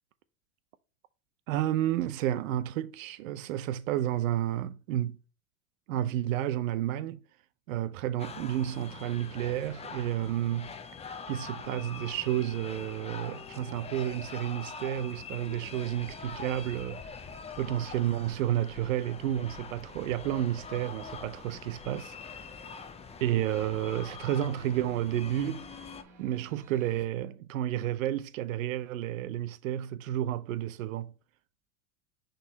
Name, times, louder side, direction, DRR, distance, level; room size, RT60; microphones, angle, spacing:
voice 1, 1.5-5.2 5.9-7.2 7.7-10.7 11.3-17.2 17.6-22.2 23.2-25.7 26.2-31.1, right 12 dB, 80° right, 0.6 m, -31 dB
sound 1, 8.2-26.0, left 5 dB, 15° left, 0.7 m, -44 dB
sound 2, 17.0-27.0, right 1 dB, 45° right, 1.9 m, -60 dB
6.2 x 3.9 x 3.9 m
hypercardioid pair, 105°, 40 cm